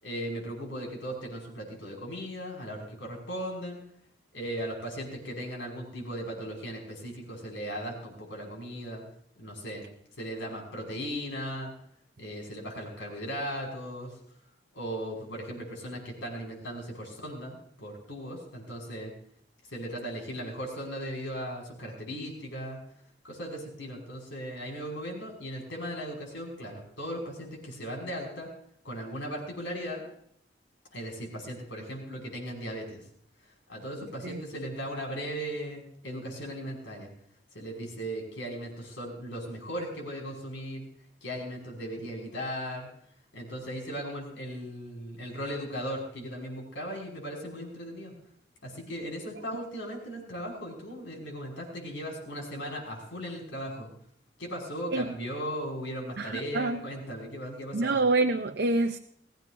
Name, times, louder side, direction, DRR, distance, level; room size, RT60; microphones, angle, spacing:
voice 1, 0.0-3.8 4.3-9.0 9.4-9.8 10.2-11.7 12.2-14.1 14.7-19.1 19.7-22.8 23.2-28.5 28.8-30.1 30.9-33.0 33.7-37.1 37.5-40.9 41.2-42.9 43.3-48.1 48.6-53.9 54.4-58.0, equal, 85° left, 0 dB, 5.6 m, -37 dB
voice 2, 56.2-56.8 57.7-59.0, right 2 dB, 60° right, 6 dB, 0.6 m, -26 dB
20.5 x 16.0 x 2.6 m, 0.66 s
head